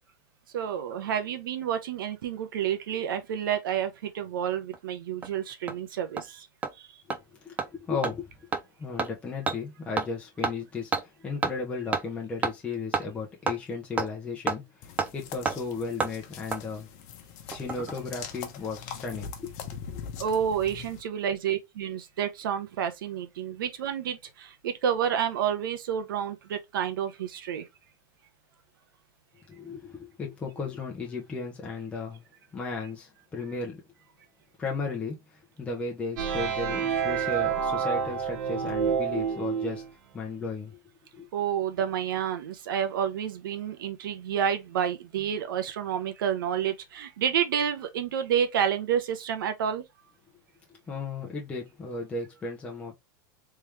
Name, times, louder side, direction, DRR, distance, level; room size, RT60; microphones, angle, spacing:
voice 1, 0.5-6.5 6.8-6.9 20.2-27.7 41.3-49.8, right 9 dB, 85° right, 1.0 m, -29 dB
Hammer, 4.7-4.8 5.2-5.3 5.7-5.8 6.2-6.3 6.6-6.7 7.1-7.2 7.6-7.7 8.0-8.1 8.5-8.6 9.0-9.1 9.5-9.6 10.0-10.1 10.4-10.5 10.9-11.0 11.4-11.5 11.9-12.0 12.4-12.5 12.9-13.0 13.5-13.6 14.0-14.1 14.5-14.6 15.0-15.1 15.5-15.6 16.0-16.1 16.5-16.6 17.5-17.9 18.2-18.3, right 4 dB, 15° right, 0.6 m, -28 dB
voice 2, 7.4-8.3 8.8-14.6 15.1-16.9 17.5-19.5 19.9-20.0 29.5-32.2 32.5-33.8 34.6-35.2 35.6-39.8 40.1-40.8 41.1-41.3 50.9-52.9, left 4 dB, 10° left, 0.9 m, -35 dB
sound 1, 14.8-21.0, left 7 dB, 50° left, 1.0 m, -42 dB
sound 2, 36.2-39.9, right 7 dB, 65° right, 1.1 m, -28 dB
3.6 x 3.0 x 3.3 m
supercardioid pair, 155°, 11 cm